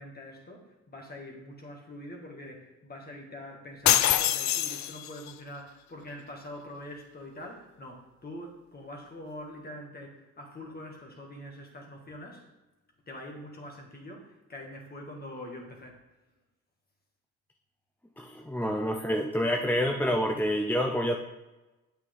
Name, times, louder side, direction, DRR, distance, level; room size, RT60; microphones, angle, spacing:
voice 1, 0.0-12.4 13.1-16.0, left 1 dB, 30° left, 1 dB, 1.9 m, -44 dB
sound 1, 3.9-5.3, left 12 dB, 65° left, 0.5 m, -24 dB
voice 2, 18.2-21.2, equal, 5° left, 2 dB, 0.6 m, -27 dB
8.1 x 6.0 x 3.8 m, 1.1 s
cardioid pair, 90°, 30 cm